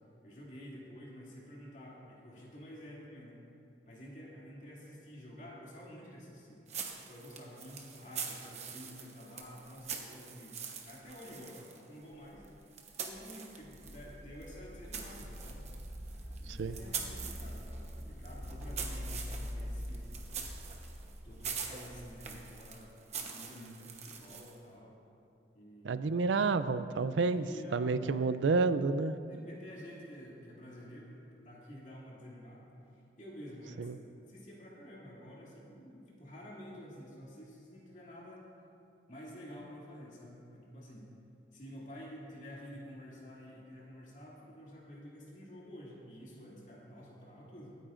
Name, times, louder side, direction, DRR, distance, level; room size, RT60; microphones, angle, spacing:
voice 1, 0.2-3.4 3.8-6.6 7.1-10.6 10.8-12.5 13.0-15.6 16.4-20.1 21.2-22.9 23.2-25.0 25.5-26.0 27.2-28.4 29.3-33.9 34.3-38.5 39.1-41.1 41.5-47.7, equal, 40° left, -5 dB, 2.4 m, -50 dB
sound 1, 6.7-14.1 14.4-24.6, right 6 dB, 35° right, 1.0 m, -44 dB
sound 2, 13.6-22.4, equal, 10° right, 1.4 m, -44 dB
voice 2, 16.5-16.8 25.8-27.5 27.7-29.2 33.8-34.0, right 4 dB, 85° right, 13 dB, 0.4 m, -30 dB
23.5 x 9.2 x 2.6 m, 2.7 s
head